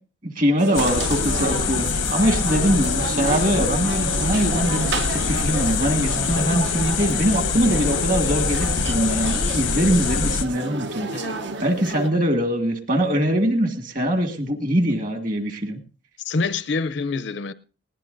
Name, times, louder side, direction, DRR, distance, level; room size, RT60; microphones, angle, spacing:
voice 1, 0.2-11.1 11.6-15.8, equal, 45° right, 1.8 m, -22 dB
sound 1, 0.6-12.1, right 3 dB, 65° right, 0.8 m, -31 dB
sound 2, 0.7-10.5, left 5 dB, 90° left, 0.9 m, -24 dB
voice 2, 11.1-11.5 16.2-17.5, left 4 dB, 65° left, 0.6 m, -26 dB
19.5 x 17.5 x 2.6 m
head